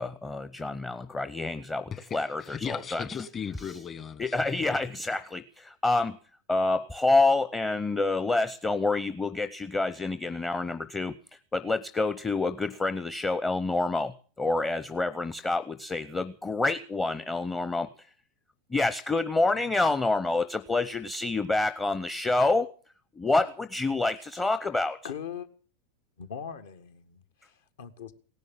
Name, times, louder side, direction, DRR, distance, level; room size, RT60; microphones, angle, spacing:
voice 1, 0.0-3.0 3.7-3.8 4.2-6.2 6.5-11.2 11.5-18.1 18.7-22.7 23.2-25.0, left 2 dB, 10° left, 0.8 m, -27 dB
voice 2, 1.9-4.3, left 7 dB, 25° left, 1.6 m, -37 dB
voice 3, 25.0-25.5 26.2-28.1, left 7 dB, 55° left, 1.8 m, -40 dB
18.0 x 10.5 x 7.5 m
figure-of-eight pair, 90°, 0 cm